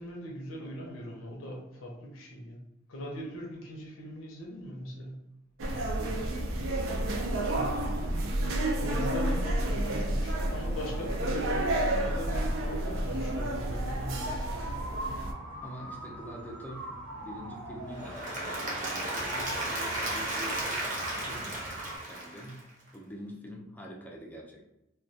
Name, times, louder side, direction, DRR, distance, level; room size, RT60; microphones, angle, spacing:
voice 1, 0.0-2.6 2.9-5.3 7.5-7.8 8.7-14.8, equal, 85° left, -1 dB, 0.6 m, -41 dB
sound 1, 5.6-15.3, right 1 dB, 70° right, 0.4 m, -30 dB
voice 2, 5.9-8.2 15.1-15.3 15.6-16.9 17.2-21.8 22.1-22.6 22.9-24.7, equal, 10° left, -1 dB, 0.4 m, -45 dB
sound 2, 12.0-22.0, right 1 dB, 85° right, 1.2 m, -42 dB
Applause / Crowd, 17.9-22.9, right 1 dB, 40° right, 0.7 m, -34 dB
2.2 x 2.2 x 2.6 m, 0.87 s
head